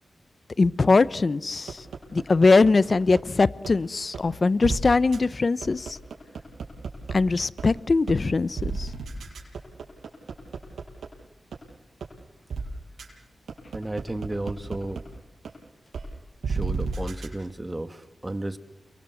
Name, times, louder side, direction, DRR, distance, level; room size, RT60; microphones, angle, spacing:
voice 1, 0.6-1.8 2.1-6.0 7.1-8.9, left 3 dB, 45° left, 18 dB, 0.8 m, -21 dB
sound 1, 1.7-3.2 3.6-3.7 4.1-4.2 4.6-4.8 5.1-5.2 5.6-7.1 7.6-7.7 8.1-8.2 8.6-11.1 11.5-11.6 12.0-12.1 12.5-12.6 13.0-13.1 13.5-15.0 15.4-15.5 15.9-16.0 16.4-17.3, right 4 dB, 90° right, 6.2 m, -31 dB
voice 2, 13.7-15.0 16.5-18.6, right 1 dB, 20° right, 10 dB, 2.0 m, -33 dB
30.0 x 22.5 x 7.9 m, 1.1 s
cardioid pair, 65°, 0 cm